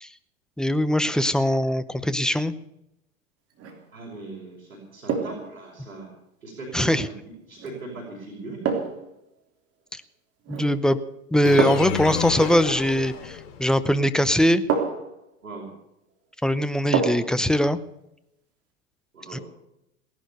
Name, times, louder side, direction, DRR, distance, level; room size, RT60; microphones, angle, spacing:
voice 1, 0.6-2.5 6.7-7.1 9.9-10.0 10.5-11.0 11.3-14.6 16.4-17.8 19.3-19.4, equal, ahead, 13 dB, 0.7 m, -21 dB
sound 1, 3.5-3.9 5.1-5.5 7.6-7.8 8.6-9.1 10.4-10.8 11.6-12.0 13.7-13.8 14.7-15.2 16.9-17.4 17.8-17.9, right 5 dB, 35° right, 3.4 m, -27 dB
voice 2, 3.9-6.1 6.4-8.6 15.4-15.7 19.1-19.4, right 3 dB, 90° right, -3 dB, 5.4 m, -39 dB
sound 2, 11.4-13.8, left 8 dB, 65° left, 3.7 m, -30 dB
18.5 x 11.5 x 6.8 m, 0.85 s
hypercardioid pair, 105°, 40 cm